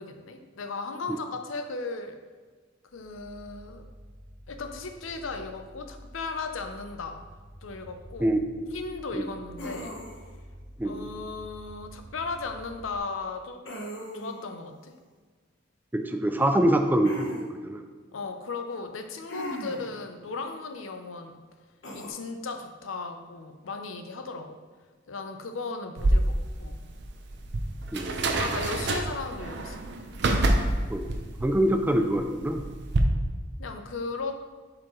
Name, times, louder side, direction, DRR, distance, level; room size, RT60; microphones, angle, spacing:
voice 1, 0.0-2.2 2.9-3.9 4.5-7.2 7.6-8.3 8.7-9.9 10.8-13.6 14.1-14.9 18.1-21.4 21.9-24.6 25.1-26.8 28.2-29.8 33.6-34.4, left 3 dB, 90° left, 6 dB, 0.6 m, -36 dB
sound 1, 2.9-13.0, equal, 85° right, 1.0 m, -48 dB
voice 2, 8.2-8.7 9.1-9.3 10.8-11.1 15.9-17.8 27.9-28.3 30.9-32.6, right 1 dB, 10° right, 6 dB, 0.3 m, -25 dB
sound 2, 9.6-10.4 13.6-14.4 17.0-17.4 19.3-20.0 21.8-22.1, equal, 70° left, 1.2 m, -38 dB
sound 3, 26.0-33.0, right 2 dB, 60° right, 0.6 m, -28 dB
7.3 x 5.0 x 3.1 m, 1.5 s
head